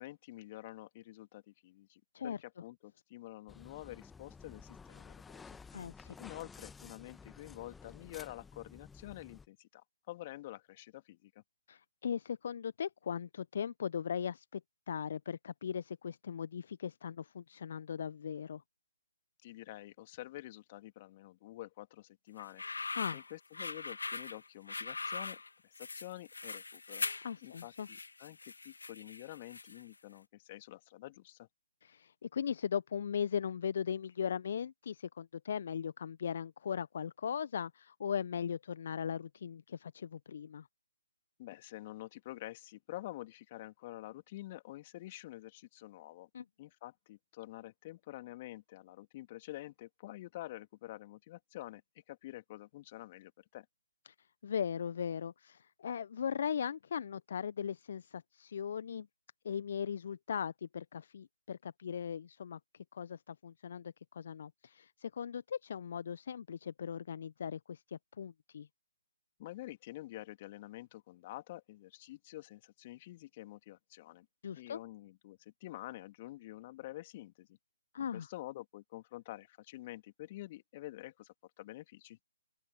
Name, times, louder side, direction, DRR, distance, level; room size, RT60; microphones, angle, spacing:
voice 1, 0.0-5.6 6.2-11.4 19.4-22.6 23.1-25.4 25.8-27.1 27.4-31.5 41.4-46.3 46.6-51.8 52.1-53.7 69.4-74.3 74.6-77.6 78.1-82.2, left 16 dB, 30° left, 2.7 m, -48 dB
sound 1, 3.5-9.5, left 5 dB, 5° left, 1.2 m, -53 dB
voice 2, 5.7-6.1 11.7-14.6 14.9-18.6 22.9-23.2 27.2-27.9 31.8-40.7 46.3-46.4 54.4-59.1 59.4-62.6 62.9-68.7 74.4-74.8 77.9-78.3, left 7 dB, 50° left, 1.0 m, -38 dB
sound 2, 22.4-29.9, left 3 dB, 70° left, 2.1 m, -42 dB
open air
figure-of-eight pair, 140°, 0 cm